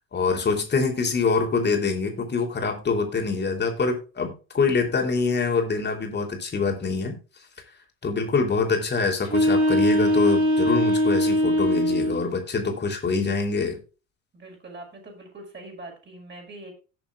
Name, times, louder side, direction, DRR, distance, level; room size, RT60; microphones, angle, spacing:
voice 1, 0.1-7.2 8.0-13.8, left 4 dB, 25° left, 3 dB, 3.2 m, -25 dB
sound 1, 9.2-12.2, left 1 dB, 90° right, 1.9 m, -21 dB
voice 2, 14.3-16.7, right 2 dB, 25° right, 1 dB, 5.5 m, -43 dB
18.0 x 7.0 x 2.4 m, 0.33 s
figure-of-eight pair, 65°, 41 cm